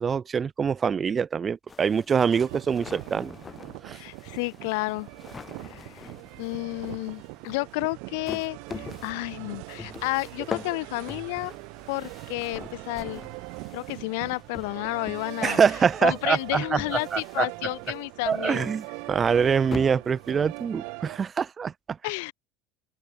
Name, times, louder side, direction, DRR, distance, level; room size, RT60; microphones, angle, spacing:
voice 1, 0.0-3.3 3.8-4.0 15.4-16.8 17.1-17.5 18.3-22.0, right 6 dB, 25° right, 0.7 m, -24 dB
sound 1, 1.7-20.9, left 5 dB, 20° left, 5.2 m, -44 dB
sound 2, 2.3-21.2, right 36 dB, 70° right, 0.7 m, -42 dB
voice 2, 3.9-5.1 5.7-6.1 6.4-11.5 11.9-13.2 13.7-15.6 16.0-18.7 22.0-22.3, left 28 dB, 80° left, 0.6 m, -31 dB
open air
supercardioid pair, 130°, 0 cm